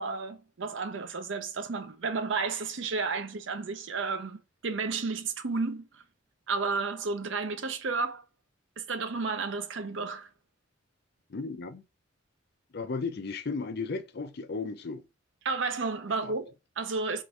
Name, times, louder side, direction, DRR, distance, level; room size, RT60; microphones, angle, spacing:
voice 1, 0.0-6.0 6.5-8.2 8.8-10.3 15.4-17.2, right 4 dB, 65° right, 0.6 m, -32 dB
voice 2, 11.3-11.8 12.7-15.0 16.2-16.3, left 4 dB, 55° left, 0.5 m, -35 dB
3.7 x 2.6 x 4.5 m
head